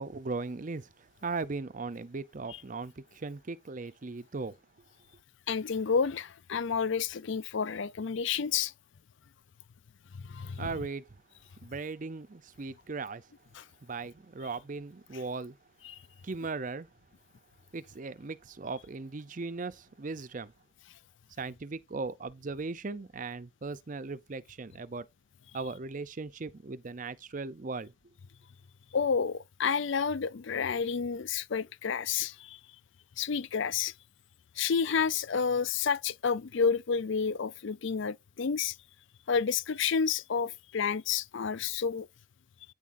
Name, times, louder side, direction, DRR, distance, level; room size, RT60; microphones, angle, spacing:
voice 1, 0.0-4.6 10.6-11.0 11.6-13.3 13.8-15.6 16.2-16.9 17.7-20.5 21.4-25.1 25.5-27.9, right 3 dB, 40° right, 0.5 m, -38 dB
voice 2, 5.5-8.7 10.1-10.7 13.5-13.6 15.8-16.0 28.9-32.6 33.2-33.9 34.6-38.8 39.3-42.1, left 6 dB, 60° left, 0.5 m, -30 dB
9.3 x 7.2 x 2.6 m
head